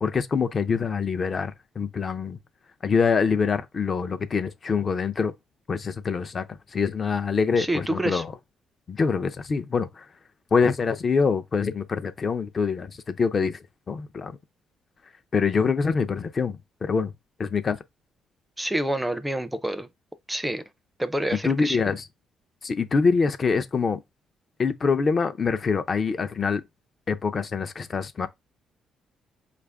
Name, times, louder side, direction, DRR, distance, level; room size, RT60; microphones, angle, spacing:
voice 1, 0.0-1.5 1.8-2.4 2.8-5.3 5.7-8.3 8.9-10.0 10.5-13.6 13.9-14.4 15.3-17.1 17.4-17.8 21.4-22.0 22.6-24.0 24.6-26.6 27.1-28.3, left 5 dB, 40° left, 0.5 m, -25 dB
voice 2, 7.6-8.2 18.6-19.9 20.3-20.6 21.0-21.9, right 1 dB, 5° right, 0.5 m, -27 dB
4.7 x 2.5 x 3.4 m
cardioid pair, 90°, 0 cm